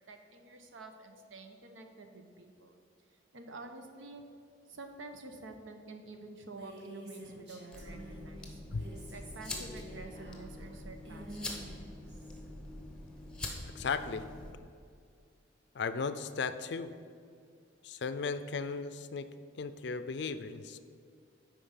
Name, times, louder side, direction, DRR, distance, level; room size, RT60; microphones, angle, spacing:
voice 1, 0.1-2.8 3.3-4.2 4.7-8.6 9.1-11.7, right 3 dB, 80° right, 5 dB, 0.9 m, -49 dB
Female speech woman speaking, 6.4-8.3 8.6-12.4, right 1 dB, 60° right, 1.8 m, -49 dB
sound 1, 7.7-14.5, left 2 dB, 5° left, 0.8 m, -44 dB
voice 2, 13.6-14.2 15.7-16.9 17.8-19.3 19.6-20.8, left 5 dB, 60° left, 12 dB, 0.4 m, -36 dB
8.5 x 5.0 x 5.7 m, 2.3 s
head